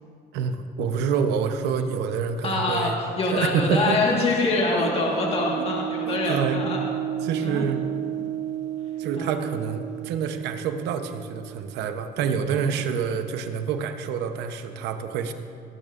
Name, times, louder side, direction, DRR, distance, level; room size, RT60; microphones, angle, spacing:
voice 1, 0.3-3.0 3.3-4.0 4.8-4.9 5.6-5.7 6.0-6.7 7.2-7.9 9.0-15.3, right 6 dB, 85° right, 7 dB, 0.8 m, -27 dB
voice 2, 2.4-6.8 7.4-7.6 9.2-9.4 12.5-12.6, left 3 dB, 35° left, -2 dB, 1.6 m, -25 dB
sound 1, 4.7-12.2, right 11 dB, 45° right, 0.4 m, -32 dB
18.5 x 12.0 x 2.5 m, 2.4 s
cardioid pair, 110°, 17 cm